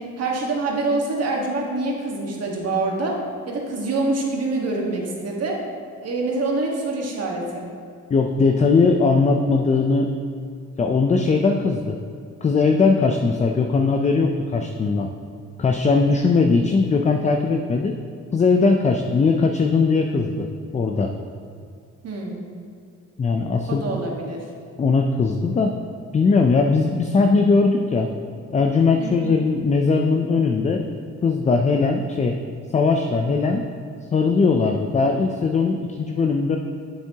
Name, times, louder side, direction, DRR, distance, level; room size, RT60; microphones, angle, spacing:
voice 1, 0.0-5.6 6.0-7.6 22.0-22.4 23.7-24.4 29.0-29.2, right 2 dB, 55° right, 0 dB, 1.5 m, -25 dB
voice 2, 8.1-10.1 10.8-12.0 12.4-15.1 15.6-18.0 18.3-20.5 20.7-21.1 23.2-23.8 24.8-25.7 26.1-28.1 28.5-30.8 31.2-32.4 32.7-33.6 34.1-36.6, left 4 dB, 25° left, 4 dB, 0.4 m, -19 dB
7.5 x 7.1 x 2.8 m, 2.3 s
cardioid pair, 90°, 30 cm